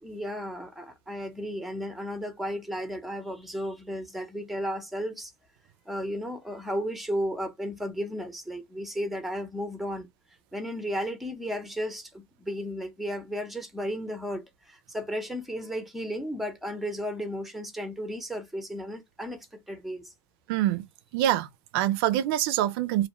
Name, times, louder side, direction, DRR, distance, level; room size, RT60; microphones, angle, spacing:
voice 1, 0.0-5.3 5.9-10.1 10.5-20.1, equal, ahead, 0.7 m, -34 dB
voice 2, 20.5-20.8 21.1-23.1, right 13 dB, 60° right, 0.4 m, -25 dB
2.5 x 2.1 x 2.9 m
supercardioid pair, 120°, 14 cm